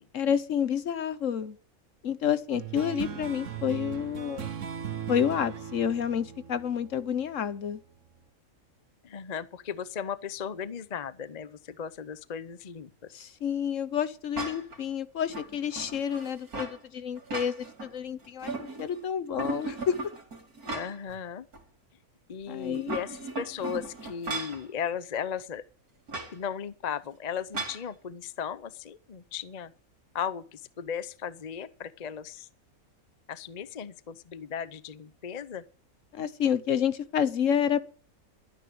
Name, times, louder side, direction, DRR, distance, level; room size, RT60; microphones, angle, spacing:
voice 1, 0.1-1.6 2.0-4.5 5.1-7.8 13.1-19.9 22.5-23.0 36.1-37.8, left 8 dB, 60° left, 1.3 m, -29 dB
sound 1, 2.5-7.5, right 8 dB, 60° right, 1.4 m, -38 dB
voice 2, 9.0-13.1 20.7-21.5 22.3-25.6 26.3-29.7 30.1-32.5 33.3-35.6, left 7 dB, 40° left, 0.7 m, -36 dB
sound 2, 14.3-14.8 15.3-16.8 17.2-17.9 18.2-19.0 19.4-21.1 21.5-21.6 22.6-24.6 26.1-26.3 27.5-27.8, right 3 dB, 90° right, 2.8 m, -37 dB
12.0 x 9.9 x 7.8 m
omnidirectional pair, 1.5 m